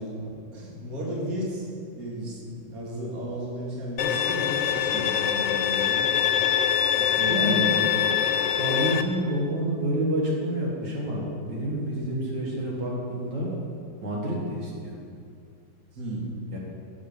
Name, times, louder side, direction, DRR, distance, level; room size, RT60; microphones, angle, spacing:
voice 1, 0.0-1.7 1.9-6.1 6.9-8.0 11.9-12.2 15.9-16.4, equal, 55° right, -3 dB, 2.2 m, -34 dB
Bowed string instrument, 4.0-9.0, left 9 dB, 90° left, 1.3 m, -24 dB
voice 2, 7.0-7.7 8.5-13.6 14.0-15.0 16.5-16.6, right 1 dB, 85° right, -3 dB, 2.4 m, -28 dB
12.0 x 7.5 x 5.0 m, 2.4 s
omnidirectional pair, 1.9 m